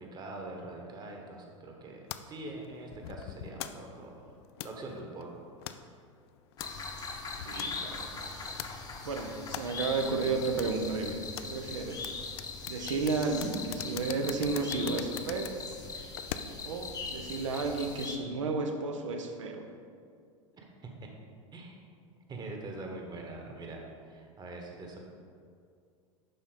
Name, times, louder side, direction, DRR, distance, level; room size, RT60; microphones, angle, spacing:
voice 1, 0.0-4.3 4.6-5.4 20.5-20.7 21.0-21.1 21.5-21.8 22.3-25.0, right 2 dB, 25° right, 1 dB, 1.2 m, -43 dB
sound 1, 2.1-16.8, left 11 dB, 50° left, 0.4 m, -45 dB
sound 2, 6.6-18.2, left 4 dB, 25° left, 1.0 m, -41 dB
voice 2, 7.4-8.6 9.0-12.0 12.7-15.6 16.7-19.6, right 4 dB, 70° right, 4 dB, 0.8 m, -33 dB
11.0 x 4.1 x 3.9 m, 2.3 s
figure-of-eight pair, 85°, 17 cm